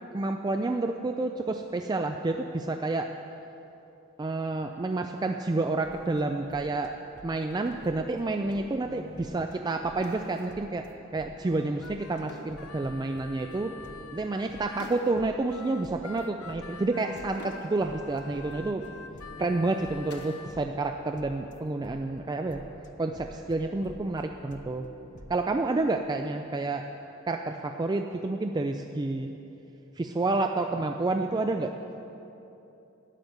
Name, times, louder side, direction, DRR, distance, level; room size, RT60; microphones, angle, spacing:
voice 1, 0.1-3.1 4.2-7.0 7.2-10.9 11.1-13.7 14.1-18.9 19.4-22.6 23.0-24.9 25.3-26.9 27.3-29.4 30.0-31.7, right 2 dB, 20° right, 5 dB, 0.3 m, -29 dB
sound 1, 5.8-25.4, left 1 dB, 35° left, 0.6 m, -50 dB
sound 2, 5.9-6.1 7.7-8.0 10.0-10.6 12.3-12.7 14.8-15.2 15.5-15.6 17.1-18.0 20.1-20.5 20.8-21.3 23.7-24.1, left 1 dB, 50° left, 1.3 m, -49 dB
Harmonica, 11.4-14.9 15.5-20.6, left 5 dB, 90° left, 0.7 m, -47 dB
11.5 x 6.6 x 9.3 m, 2.9 s
head